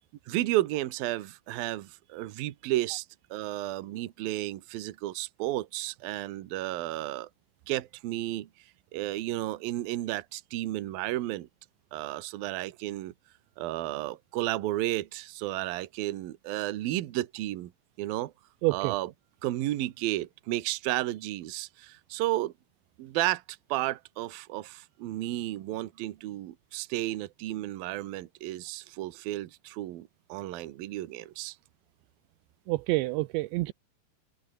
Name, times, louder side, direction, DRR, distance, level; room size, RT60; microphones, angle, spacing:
voice 1, 0.3-3.1 3.3-7.3 7.7-8.5 8.9-11.5 11.9-13.1 13.6-17.7 18.0-18.3 18.7-19.1 19.4-22.5 23.0-31.6, right 15 dB, 65° right, 2.7 m, -32 dB
voice 2, 18.6-18.9 32.7-33.7, right 20 dB, 80° right, 2.9 m, -27 dB
omnidirectional pair, 5.3 m